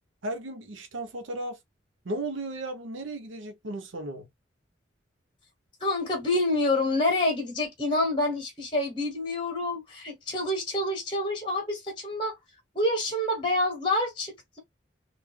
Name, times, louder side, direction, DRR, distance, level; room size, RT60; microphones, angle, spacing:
voice 1, 0.2-1.6 2.0-4.3, right 1 dB, 85° right, 0.8 m, -35 dB
voice 2, 5.8-12.3 12.7-14.6, left 2 dB, 25° left, 1.2 m, -27 dB
3.5 x 2.4 x 3.2 m
head